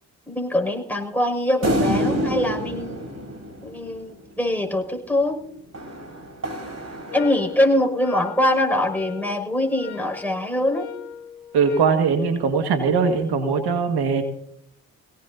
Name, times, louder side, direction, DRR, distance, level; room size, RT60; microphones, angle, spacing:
voice 1, 0.3-3.0 3.6-5.4 7.1-10.9, left 1 dB, 5° left, 2 dB, 6.3 m, -23 dB
sound 1, 1.6-4.3 5.7-7.8, equal, 40° right, 5.4 m, -27 dB
sound 2, 7.1-12.0, left 13 dB, 65° left, 2.0 m, -39 dB
voice 2, 11.5-14.2, right 5 dB, 75° right, 6 dB, 2.0 m, -20 dB
25.0 x 17.5 x 2.8 m, 0.70 s
hypercardioid pair, 45°, 40 cm